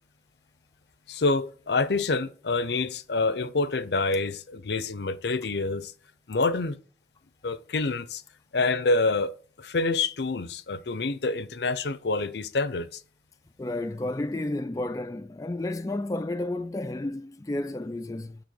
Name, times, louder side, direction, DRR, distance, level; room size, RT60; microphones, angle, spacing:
voice 1, 1.1-5.9 6.3-6.8 7.4-8.2 8.5-9.3 9.6-13.0, left 3 dB, 70° left, 0.6 m, -27 dB
voice 2, 13.6-18.4, left 2 dB, 20° left, 0.3 m, -31 dB
9.3 x 4.3 x 6.9 m
head